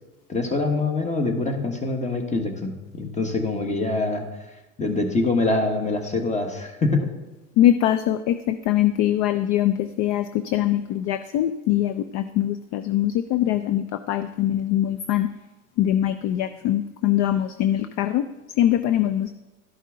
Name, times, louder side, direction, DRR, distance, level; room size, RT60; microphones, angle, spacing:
voice 1, 0.3-4.3 4.8-7.1, left 3 dB, 15° left, 4 dB, 1.4 m, -24 dB
voice 2, 7.6-15.3 15.8-18.3 18.6-19.3, left 12 dB, 45° left, 11 dB, 0.5 m, -22 dB
12.5 x 5.5 x 3.7 m, 1.1 s
hypercardioid pair, 95°, 42 cm